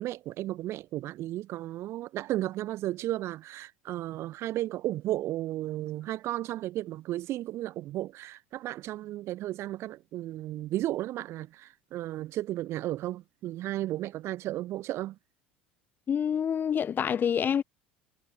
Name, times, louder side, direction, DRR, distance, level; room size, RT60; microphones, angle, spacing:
voice 1, 0.0-15.2, right 15 dB, 50° right, 5.0 m, -34 dB
voice 2, 16.1-17.6, left 8 dB, 35° left, 5.6 m, -27 dB
figure-of-eight pair, 70°, 6 cm